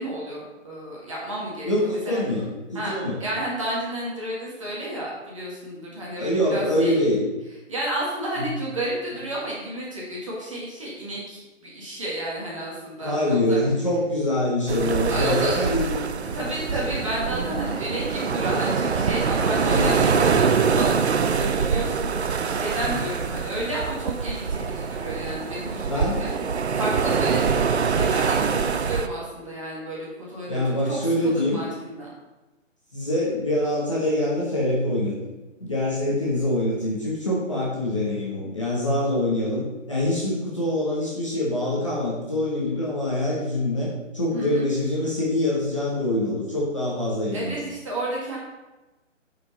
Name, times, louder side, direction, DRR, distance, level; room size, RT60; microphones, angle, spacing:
voice 1, 0.0-2.2 2.7-7.0 7.7-13.6 15.1-15.7 16.3-26.3 26.7-31.0 31.2-32.1 44.3-44.7 47.3-48.4, right 1 dB, 25° right, -6 dB, 1.8 m, -31 dB
voice 2, 1.7-3.2 6.2-7.2 8.4-8.5 13.0-16.4 19.3-20.4 22.8-23.0 25.8-26.2 30.5-31.6 32.9-35.3 35.6-47.6, left 1 dB, 25° left, -6 dB, 1.1 m, -25 dB
sound 1, 14.7-29.1, right 6 dB, 60° right, 0.5 m, -24 dB
9.1 x 5.1 x 4.1 m, 1.1 s
hypercardioid pair, 180°, 38 cm